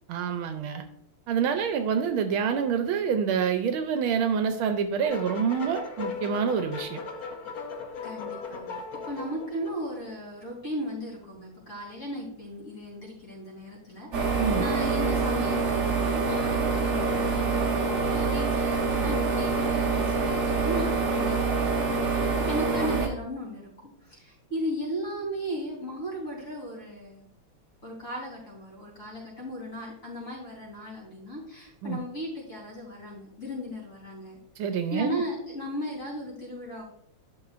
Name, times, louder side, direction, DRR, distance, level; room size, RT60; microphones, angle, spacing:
voice 1, 0.1-0.8 1.3-7.0 14.4-14.7 31.8-32.0 34.6-35.2, right 7 dB, 80° right, 8 dB, 1.4 m, -27 dB
sound 1, 5.0-10.1, left 5 dB, 60° left, 1.0 m, -38 dB
voice 2, 8.0-8.8 9.1-27.3 27.8-34.4 34.9-36.8, equal, 35° left, -4 dB, 4.1 m, -36 dB
sound 2, 14.1-23.1, right 4 dB, 45° right, 1.2 m, -26 dB
11.5 x 6.0 x 2.5 m, 0.71 s
omnidirectional pair, 2.3 m